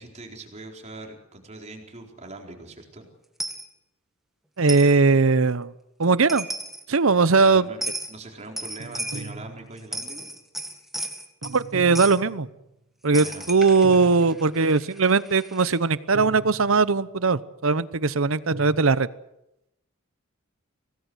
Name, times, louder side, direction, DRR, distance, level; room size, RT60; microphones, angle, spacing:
voice 1, 0.0-3.1 7.4-10.3 13.1-13.5, right 2 dB, 35° right, 2 dB, 4.3 m, -42 dB
Coin (dropping), 3.4-3.7 4.7-4.9 6.0-6.1 6.3-6.8 7.8-8.1 8.6-9.3 9.8-11.6 12.0-12.2 13.1-15.8, right 1 dB, ahead, 2.0 m, -34 dB
voice 2, 4.6-5.7 6.0-6.5 6.9-7.7 11.4-12.5 13.0-19.1, right 4 dB, 70° right, 17 dB, 0.9 m, -20 dB
sound 1, 8.8-10.1 11.4-12.7 13.8-14.8 16.1-17.1 18.5-18.8, right 2 dB, 90° right, 1.4 m, -39 dB
25.0 x 18.0 x 8.0 m, 0.86 s
head